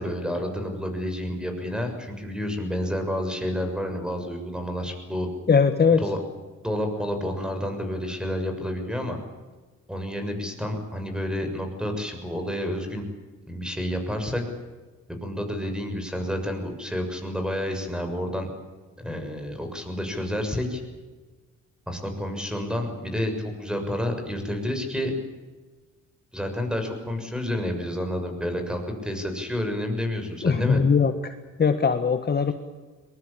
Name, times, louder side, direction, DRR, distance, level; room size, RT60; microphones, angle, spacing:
voice 1, 0.0-5.3 5.9-6.2 6.6-9.2 9.9-13.0 13.5-14.4 15.1-18.5 19.0-20.8 21.9-25.1 26.3-30.8, left 1 dB, 5° right, 5 dB, 6.8 m, -29 dB
voice 2, 5.5-6.0 30.4-31.3 31.6-32.5, left 5 dB, 35° left, 8 dB, 1.6 m, -20 dB
22.0 x 22.0 x 8.7 m, 1.3 s
cardioid pair, 90°, 30 cm